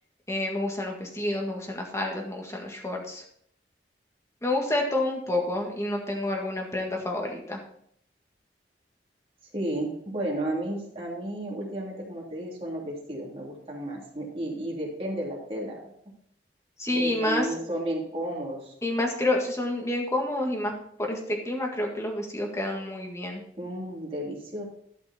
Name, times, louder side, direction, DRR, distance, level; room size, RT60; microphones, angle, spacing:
voice 1, 0.3-3.2 4.4-7.6 16.8-17.5 18.8-20.7 21.0-23.4, left 1 dB, 15° left, 0 dB, 1.8 m, -29 dB
voice 2, 9.5-15.8 16.9-18.8 23.6-24.6, right 1 dB, 35° right, -4 dB, 3.0 m, -33 dB
12.0 x 6.1 x 4.3 m, 0.68 s
head